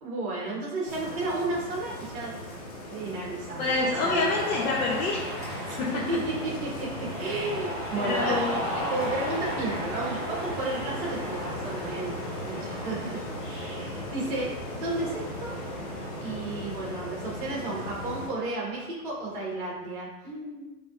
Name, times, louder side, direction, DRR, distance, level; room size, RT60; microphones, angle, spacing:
voice 1, 0.0-2.3 2.9-4.2 5.7-5.8 6.1-15.5 16.2-20.7, right 2 dB, 35° right, -4 dB, 1.5 m, -33 dB
sound 1, 0.8-18.3, equal, 25° left, 0.5 m, -37 dB
voice 2, 3.6-5.2 5.8-6.0 7.9-8.6, left 3 dB, 80° left, -4 dB, 1.1 m, -27 dB
Cheering, 3.7-18.5, equal, 5° right, 1.1 m, -38 dB
6.7 x 3.0 x 2.5 m, 1.0 s
supercardioid pair, 175°, 45 cm